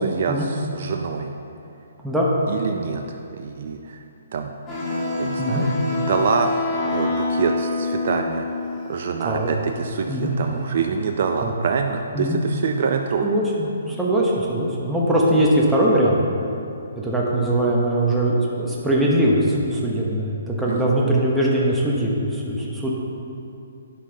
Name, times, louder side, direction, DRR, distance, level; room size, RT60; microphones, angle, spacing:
voice 1, 0.0-1.3 2.5-4.0 4.3-4.5 5.2-13.3 20.7-20.8, right 5 dB, 55° right, 4 dB, 0.4 m, -26 dB
sound 1, 4.7-10.7, left 3 dB, 20° left, 2.0 m, -27 dB
voice 2, 13.2-16.2 17.0-22.9, right 1 dB, 5° right, -5 dB, 1.0 m, -21 dB
9.9 x 5.4 x 3.9 m, 2.7 s
hypercardioid pair, 145°, 0 cm